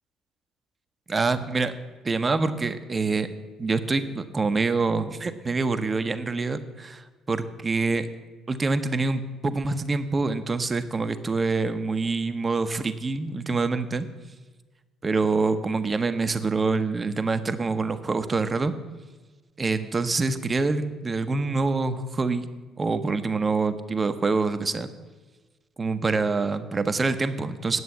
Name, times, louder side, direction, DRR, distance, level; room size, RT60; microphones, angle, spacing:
voice 1, 1.1-1.7 2.0-3.3 3.6-8.1 8.5-14.1 15.0-18.7 19.6-22.5 22.8-24.9 25.8-27.8, right 3 dB, 30° right, 11 dB, 0.8 m, -26 dB
9.6 x 7.9 x 7.0 m, 1.3 s
figure-of-eight pair, 50°, 0 cm